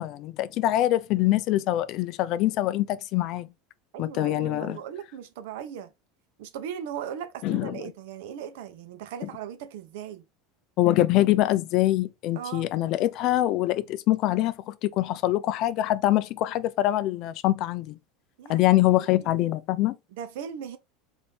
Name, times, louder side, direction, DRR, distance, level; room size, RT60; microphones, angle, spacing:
voice 1, 0.0-3.5 4.0-4.8 7.4-7.8 10.8-18.0 18.5-20.0, left 15 dB, 50° left, 0.4 m, -24 dB
voice 2, 3.9-5.9 6.4-10.2 12.3-12.7 18.4-19.3 20.1-20.8, right 9 dB, 75° right, 0.8 m, -38 dB
4.0 x 2.7 x 3.4 m
supercardioid pair, 130°, 0 cm